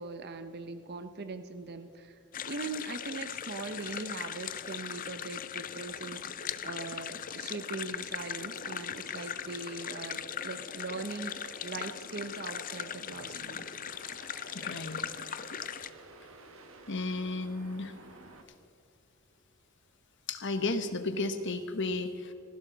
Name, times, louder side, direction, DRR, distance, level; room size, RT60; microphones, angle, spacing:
voice 1, 0.0-2.2 2.5-13.7, right 3 dB, 50° right, 9 dB, 0.8 m, -41 dB
sound 1, 2.3-15.9, left 9 dB, 40° left, 0.5 m, -39 dB
sound 2, 5.9-18.4, right 2 dB, 70° right, 1.7 m, -52 dB
voice 2, 14.5-15.0 16.9-17.9 20.3-22.3, left 3 dB, 60° left, 9 dB, 1.2 m, -33 dB
19.0 x 16.5 x 4.0 m, 2.5 s
head